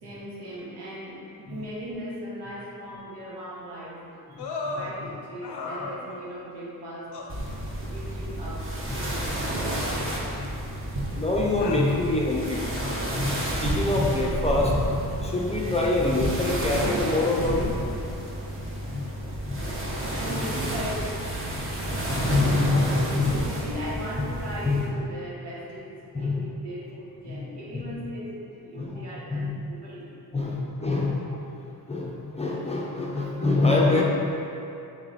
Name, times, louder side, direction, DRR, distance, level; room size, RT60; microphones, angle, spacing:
voice 1, 0.0-4.0 4.3-4.5 4.7-7.1 7.8-8.6 8.9-9.2 20.1-21.2 22.2-30.1 30.4-30.6 30.9-31.1, equal, 85° right, -6 dB, 1.2 m, -38 dB
sound 1, 4.4-4.9 5.4-6.4 7.1-7.4 8.4-8.5 9.8-10.7 11.6-11.9 12.8-13.2 14.2-14.4, left 3 dB, 80° left, 0.5 m, -37 dB
sound 2, 7.3-24.9, right 1 dB, 35° right, 0.8 m, -30 dB
voice 2, 11.1-14.8 15.2-17.8 18.5-18.6 18.9-19.0 19.4-19.6 19.9-20.0 21.9-23.3 24.6-24.8 26.1-26.4 27.3-27.4 27.7-27.8 28.7-29.0 29.3-29.5 30.3-31.2 31.9-34.0, left 2 dB, 15° left, -3 dB, 0.4 m, -25 dB
3.8 x 3.1 x 3.9 m, 2.7 s
cardioid pair, 100°, 39 cm